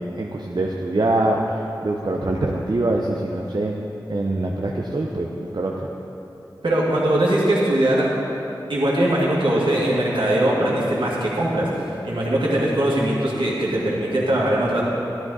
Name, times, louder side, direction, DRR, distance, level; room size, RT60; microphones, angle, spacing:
voice 1, 0.0-3.8 4.1-5.7, right 2 dB, 55° right, -1 dB, 0.8 m, -24 dB
voice 2, 6.6-8.1 8.7-14.8, right 1 dB, 75° right, -5 dB, 2.4 m, -21 dB
12.5 x 10.0 x 4.1 m, 2.9 s
wide cardioid pair, 45°, 8 cm